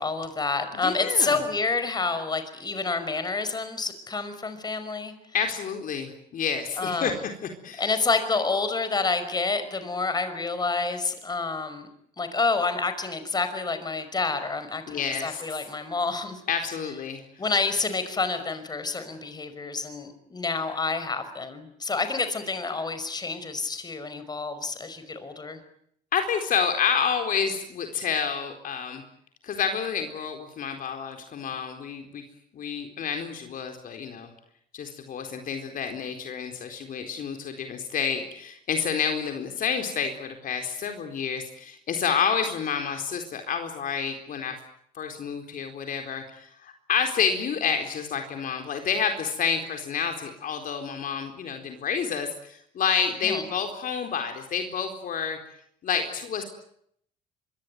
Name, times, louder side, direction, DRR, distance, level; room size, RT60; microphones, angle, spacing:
voice 1, 0.0-5.1 6.8-7.2 7.8-11.9 12.2-16.4 17.4-25.6 53.2-53.4, left 4 dB, 25° left, 10 dB, 5.5 m, -28 dB
voice 2, 0.8-1.4 5.3-7.1 7.6-8.0 14.9-15.4 16.5-17.2 26.1-29.0 29.4-32.2 32.5-34.3 34.7-44.6 45.0-55.4 55.8-56.4, left 6 dB, 55° left, 5 dB, 4.2 m, -29 dB
25.5 x 23.0 x 9.4 m, 0.70 s
cardioid pair, 110°, 17 cm